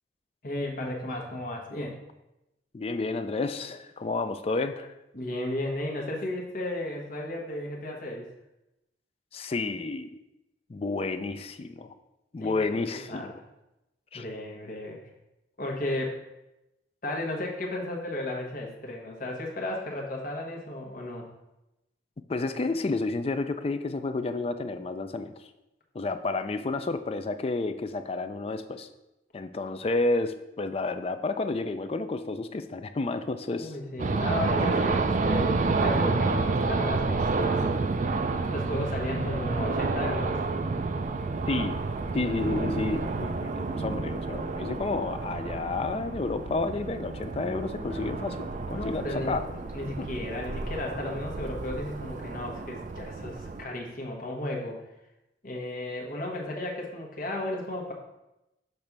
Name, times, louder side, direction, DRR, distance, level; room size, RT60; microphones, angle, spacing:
voice 1, 0.4-2.0 5.1-8.3 12.4-12.8 13.1-13.3 14.1-15.0 15.6-16.2 17.0-21.3 33.6-37.7 38.5-40.4 47.9-49.3 49.7-54.9 55.4-57.9, left 1 dB, 45° left, -1 dB, 1.2 m, -34 dB
voice 2, 2.7-4.9 9.3-10.1 10.7-11.9 12.3-13.3 14.1-14.2 22.3-25.4 25.9-28.9 29.3-33.7 34.6-34.9 41.5-41.8 42.1-49.5 50.0-50.1, left 3 dB, 30° left, 9 dB, 0.4 m, -30 dB
sound 1, 34.0-53.6, right 3 dB, 40° right, 0.4 m, -29 dB
6.7 x 3.2 x 5.9 m, 0.93 s
head